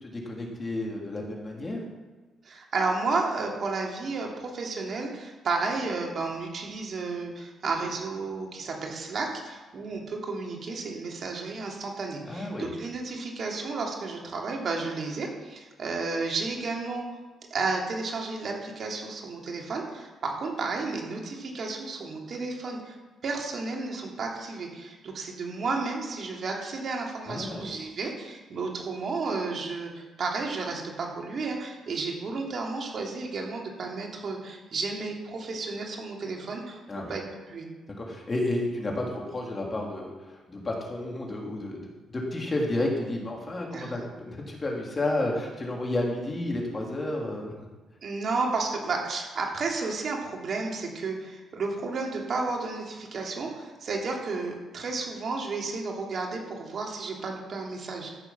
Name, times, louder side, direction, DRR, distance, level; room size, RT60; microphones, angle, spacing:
voice 1, 0.0-1.8 12.3-12.7 27.3-27.7 36.9-37.1 38.0-40.1 40.5-41.8 42.1-47.5, left 1 dB, 30° left, -1 dB, 3.2 m, -31 dB
voice 2, 2.4-17.1 17.5-23.0 23.2-37.2 37.5-37.7 43.7-43.9 48.0-58.1, right 3 dB, 55° right, 0 dB, 2.9 m, -32 dB
14.0 x 7.0 x 6.0 m, 1.3 s
cardioid pair, 90°, 0 cm